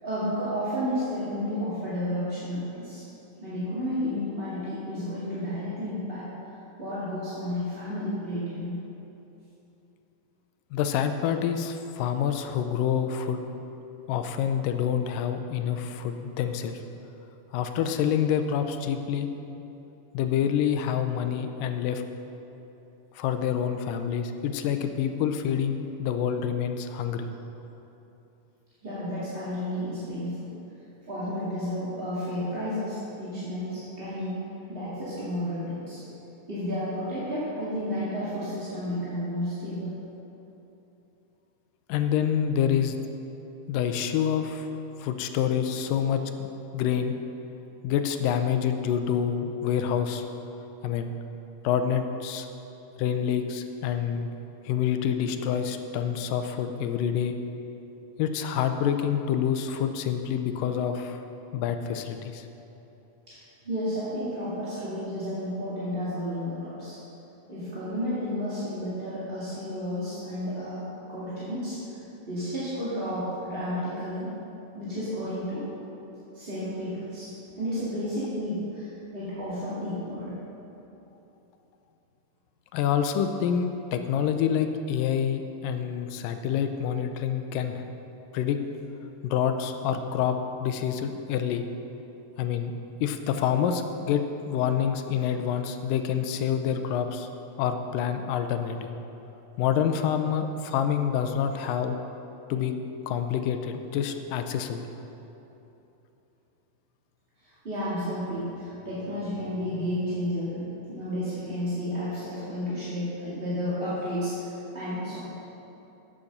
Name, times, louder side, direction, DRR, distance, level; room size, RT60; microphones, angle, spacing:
voice 1, 0.0-3.0 3.4-6.3 6.8-8.7 28.8-30.5 31.1-34.4 34.7-36.0 36.5-39.9 63.3-67.0 67.5-71.8 72.2-74.3 74.7-75.7 76.3-80.3 107.4-115.2, equal, 20° right, -11 dB, 1.6 m, -32 dB
voice 2, 10.7-13.4 14.1-16.8 17.5-19.3 20.1-22.0 23.2-27.3 41.9-43.0 43.7-44.7 45.0-46.5 46.7-47.2 47.8-50.2 50.8-51.1 51.6-52.5 53.0-54.3 54.7-57.4 58.2-61.2 61.5-62.5 82.7-87.8 88.3-88.6 89.2-91.6 92.4-92.7 93.0-97.3 97.6-98.9 99.6-102.0 102.5-102.7 103.1-104.9, left 8 dB, 80° left, 7 dB, 2.2 m, -27 dB
8.7 x 8.4 x 6.6 m, 3.0 s
omnidirectional pair, 3.9 m